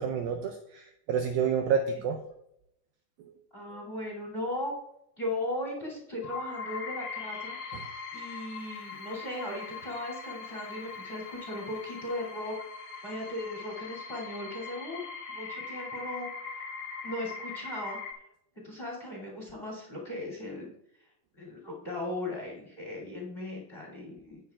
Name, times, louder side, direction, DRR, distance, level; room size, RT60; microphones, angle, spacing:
voice 1, 0.0-2.2 3.2-3.4 7.7-7.8, right 7 dB, 90° right, 5 dB, 2.0 m, -29 dB
voice 2, 3.5-4.7 5.2-7.6 8.1-12.5 13.0-15.0 15.3-16.3 16.6-16.7 17.0-18.0 18.6-20.7 21.0-21.1 21.3-24.4, left 1 dB, 20° left, -1 dB, 1.8 m, -37 dB
sound 1, 6.2-18.1, left 5 dB, 55° left, 2.0 m, -41 dB
17.0 x 7.2 x 2.4 m, 0.78 s
omnidirectional pair, 5.1 m